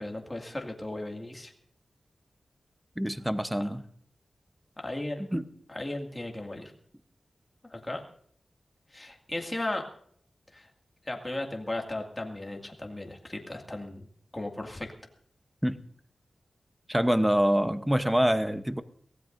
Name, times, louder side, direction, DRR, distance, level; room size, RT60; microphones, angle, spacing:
voice 1, 0.0-1.5 3.6-3.7 4.8-5.2 5.7-6.7 7.7-8.0 8.9-9.8 10.5-10.7 11.1-14.1 14.3-14.9, left 2 dB, 20° left, 2 dB, 2.2 m, -36 dB
voice 2, 3.0-3.8 5.3-5.5 15.6-15.8 16.9-18.8, equal, 5° right, 10 dB, 0.9 m, -25 dB
24.0 x 16.5 x 2.6 m, 0.63 s
wide cardioid pair, 105°, 0 cm